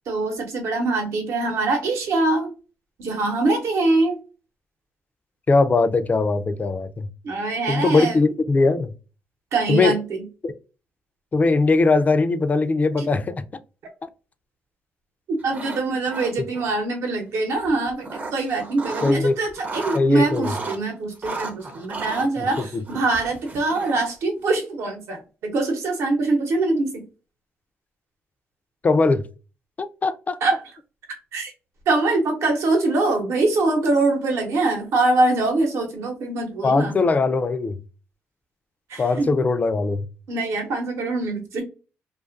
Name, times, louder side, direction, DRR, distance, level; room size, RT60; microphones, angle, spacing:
voice 1, 0.1-2.5 3.0-4.2 7.2-8.2 9.5-10.2 13.0-13.1 15.4-27.0 30.4-30.6 31.3-31.5 31.9-37.0 38.9-39.4 40.3-41.6, right 3 dB, 80° right, 0.8 m, -23 dB
voice 2, 5.5-7.1 7.7-8.9 9.7-10.0 10.4-10.5 11.3-13.4 19.0-19.4 19.9-20.5 22.4-22.8 28.8-29.2 29.8-30.4 36.6-37.8 39.0-40.1, left 3 dB, 35° left, 0.3 m, -20 dB
sound 1, 15.4-15.8 16.1-16.7 17.6-19.2 19.5-20.8 21.2-24.1, right 3 dB, 35° right, 0.5 m, -34 dB
2.5 x 2.3 x 2.4 m
cardioid pair, 75°, 5 cm